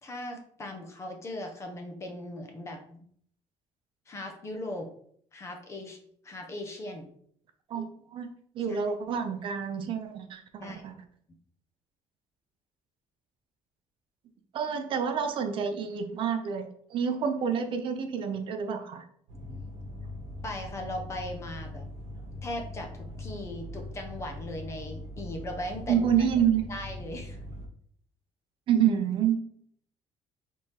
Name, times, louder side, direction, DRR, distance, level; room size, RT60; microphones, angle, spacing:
voice 1, 0.0-3.1 4.1-4.9 5.3-7.1 8.6-8.8 10.6-10.8 19.3-19.7 20.4-21.9 22.4-26.1 26.7-27.4, left 1 dB, 25° left, 3 dB, 0.6 m, -39 dB
voice 2, 8.6-10.9 14.5-19.0 25.9-26.6 28.7-29.4, right 8 dB, 45° right, 6 dB, 0.5 m, -28 dB
sound 1, 19.3-27.7, left 1 dB, 75° right, 1.0 m, -41 dB
4.7 x 3.5 x 2.8 m, 0.62 s
cardioid pair, 170°, 12 cm